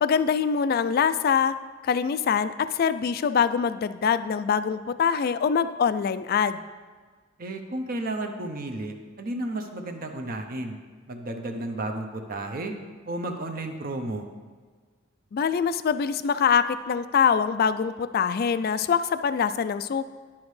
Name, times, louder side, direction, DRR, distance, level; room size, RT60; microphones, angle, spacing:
voice 1, 0.0-1.5 1.8-6.6 15.3-20.1, left 6 dB, 50° left, 13 dB, 0.3 m, -24 dB
voice 2, 7.4-10.8 11.1-12.7 13.1-14.3, right 2 dB, 45° right, 5 dB, 0.7 m, -32 dB
10.5 x 7.1 x 3.2 m, 1.5 s
head